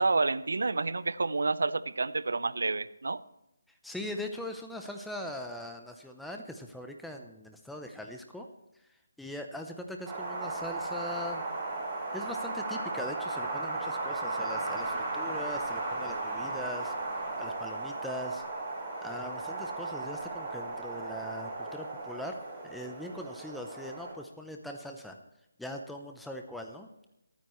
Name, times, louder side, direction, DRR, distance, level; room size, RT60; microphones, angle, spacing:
voice 1, 0.0-3.2, right 3 dB, 75° right, 16 dB, 0.6 m, -29 dB
voice 2, 3.8-8.5 9.2-11.4 12.1-16.9 17.4-18.4 19.0-25.2 25.6-26.9, left 1 dB, ahead, 3 dB, 0.7 m, -41 dB
Wind, 10.1-24.1, right 2 dB, 20° right, 4.8 m, -36 dB
24.5 x 9.3 x 3.2 m, 0.89 s
figure-of-eight pair, 165°, 0 cm